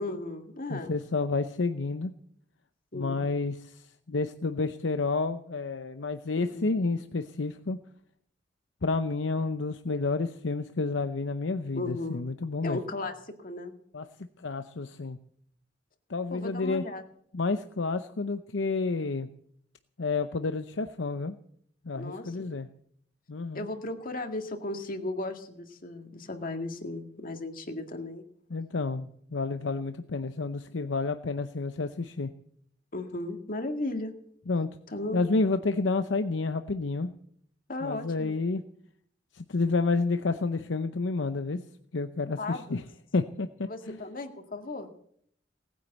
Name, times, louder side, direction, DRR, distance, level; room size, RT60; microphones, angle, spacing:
voice 1, 0.0-0.9 2.9-3.2 6.4-6.7 11.7-12.2 12.6-13.2 13.4-13.7 16.3-17.0 21.9-22.5 23.5-28.2 32.9-34.1 34.9-35.3 37.7-38.4 42.4-42.8 43.7-45.0, left 2 dB, 50° left, 5 dB, 2.0 m, -36 dB
voice 2, 0.7-2.1 2.9-7.8 8.8-12.8 13.9-14.1 14.4-15.2 16.1-16.8 17.3-19.3 20.0-21.4 21.8-22.7 23.3-23.7 28.5-32.3 34.5-34.7 35.1-37.1 37.8-38.6 39.3-41.6 41.9-42.8 43.1-44.0, left 3 dB, 85° left, 9 dB, 0.7 m, -30 dB
19.0 x 9.5 x 8.1 m, 0.67 s
head